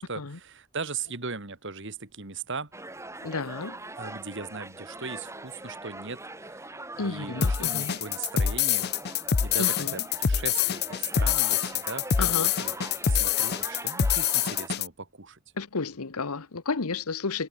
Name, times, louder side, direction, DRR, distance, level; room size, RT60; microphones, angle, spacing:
voice 1, 0.0-2.7 4.0-8.9 9.4-12.8 13.1-15.4, right 4 dB, 55° right, 2.3 m, -38 dB
sound 1, 2.7-14.7, right 2 dB, 15° right, 5.4 m, -42 dB
voice 2, 3.2-3.8 7.0-8.0 9.6-9.9 12.2-12.5 15.6-17.5, left 4 dB, 90° left, 1.1 m, -32 dB
sound 2, 7.4-14.9, left 8 dB, 45° left, 0.6 m, -25 dB
head